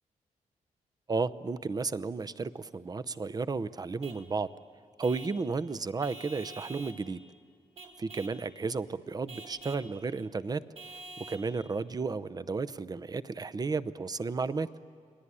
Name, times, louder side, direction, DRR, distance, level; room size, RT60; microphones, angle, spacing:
voice 1, 1.1-4.5 5.0-7.2 8.0-10.6 10.9-14.7, right 4 dB, 30° right, 13 dB, 0.7 m, -33 dB
Vehicle horn car horn honking / Truck, 4.0-4.3 5.0-5.4 6.0-7.0 7.8-8.4 9.3-9.9 10.8-11.5, right 2 dB, 45° right, 3.0 m, -47 dB
29.5 x 20.0 x 9.9 m, 2.2 s
cardioid pair, 115°, 14 cm